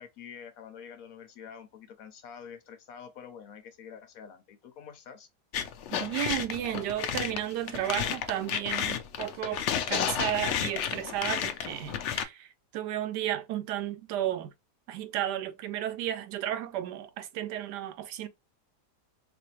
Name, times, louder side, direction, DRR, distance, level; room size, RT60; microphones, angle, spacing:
voice 1, 0.0-5.3, left 7 dB, 65° left, 0.9 m, -47 dB
sound 1, 5.5-12.2, left 9 dB, 85° left, 0.6 m, -32 dB
voice 2, 5.9-14.5 14.9-18.3, right 12 dB, 80° right, 1.2 m, -33 dB
4.0 x 2.6 x 2.9 m
omnidirectional pair, 1.8 m